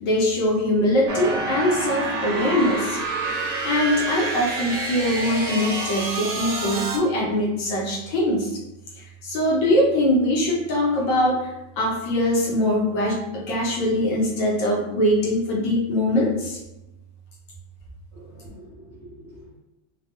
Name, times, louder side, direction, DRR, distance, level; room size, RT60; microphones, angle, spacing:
voice 1, 0.0-3.0 3.6-8.6 8.9-16.6, left 1 dB, 75° left, -2 dB, 1.1 m, -22 dB
sound 1, 1.1-7.0, right 2 dB, 80° right, 1.4 m, -28 dB
voice 2, 18.1-19.6, equal, 60° right, -10 dB, 0.7 m, -45 dB
3.4 x 2.2 x 2.6 m, 0.97 s
omnidirectional pair, 2.2 m